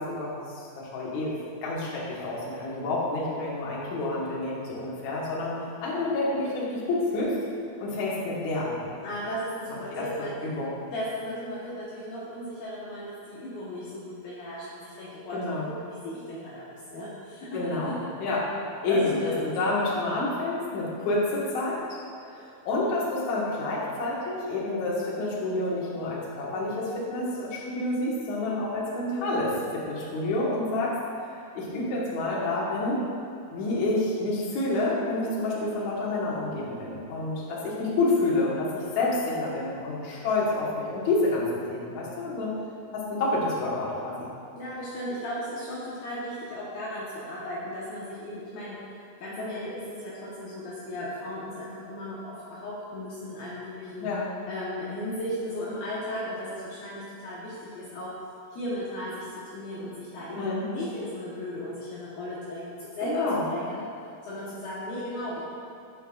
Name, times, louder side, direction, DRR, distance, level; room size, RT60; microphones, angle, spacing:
voice 1, 0.0-1.3 1.6-5.5 5.8-7.3 7.8-8.9 9.9-10.7 15.3-15.7 17.5-18.4 18.8-19.2 19.5-22.0 22.2-31.0 31.5-33.0 33.5-42.5 42.9-44.3 54.0-54.3 60.3-60.6 63.0-63.4, left 2 dB, 75° left, -6 dB, 1.7 m, -28 dB
voice 2, 9.0-10.3 10.9-17.9 18.9-19.5 44.6-48.8 49.2-54.1 54.5-58.1 58.5-59.2 59.5-63.8 64.2-65.4, left 1 dB, 90° left, -8 dB, 2.1 m, -36 dB
16.0 x 5.6 x 2.4 m, 2.4 s
omnidirectional pair, 5.9 m